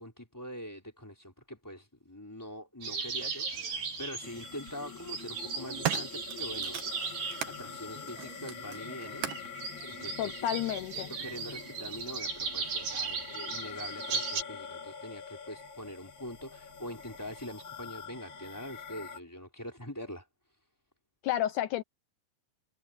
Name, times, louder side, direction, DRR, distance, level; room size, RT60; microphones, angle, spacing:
voice 1, 0.0-10.3 11.2-20.3, equal, 5° left, 4.1 m, -44 dB
sound 1, 2.8-14.4, right 5 dB, 80° right, 7.5 m, -38 dB
sound 2, 3.2-3.3 4.4-4.8 5.3-7.6 8.1-9.6 10.4-10.5, right 12 dB, 65° right, 2.9 m, -38 dB
sound 3, 4.2-19.2, left 6 dB, 40° left, 2.2 m, -45 dB
voice 2, 10.2-11.1 21.2-21.8, left 12 dB, 85° left, 1.7 m, -31 dB
omnidirectional pair, 4.4 m